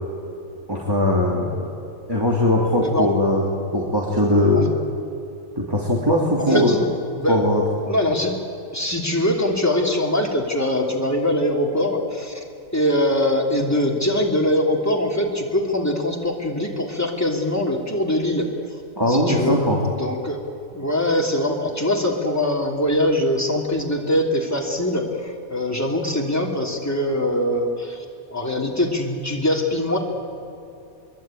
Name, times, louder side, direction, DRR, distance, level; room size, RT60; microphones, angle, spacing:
voice 1, 0.7-1.7 2.1-4.8 5.6-6.7 7.3-7.6 19.0-19.8, left 1 dB, 15° right, -3 dB, 3.0 m, -20 dB
voice 2, 6.4-6.8 7.2-7.4 7.9-8.4 8.7-12.4 12.7-18.5 19.1-20.4 20.7-28.0 28.3-30.0, left 1 dB, 10° left, 0 dB, 3.0 m, -22 dB
25.0 x 22.0 x 9.1 m, 2.7 s
omnidirectional pair, 1.5 m